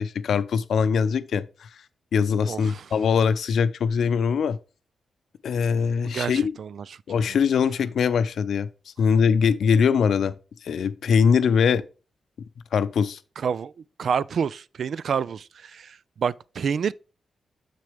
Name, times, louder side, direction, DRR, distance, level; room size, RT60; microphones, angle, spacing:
voice 1, 0.0-1.4 2.1-4.6 5.4-6.5 7.1-8.7 9.0-10.3 10.6-11.8 12.7-13.2, left 6 dB, 75° left, 0.6 m, -22 dB
voice 2, 2.5-2.8 6.0-6.8 7.1-7.4 13.4-13.7 14.0-16.9, right 7 dB, 70° right, 0.3 m, -28 dB
6.8 x 6.4 x 3.4 m
supercardioid pair, 45°, 0 cm